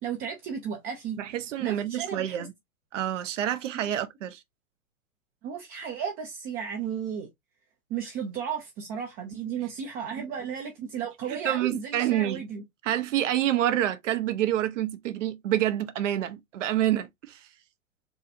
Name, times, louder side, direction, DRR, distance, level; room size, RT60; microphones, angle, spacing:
voice 1, 0.0-1.2 1.6-2.4 3.9-4.0 5.4-7.3 7.9-12.6, right 7 dB, 20° right, 0.5 m, -34 dB
voice 2, 1.2-2.5 2.9-4.4 10.2-10.3 11.3-12.4 12.8-17.5, right 12 dB, 60° right, 0.7 m, -27 dB
4.2 x 2.3 x 2.6 m
hypercardioid pair, 115°, 42 cm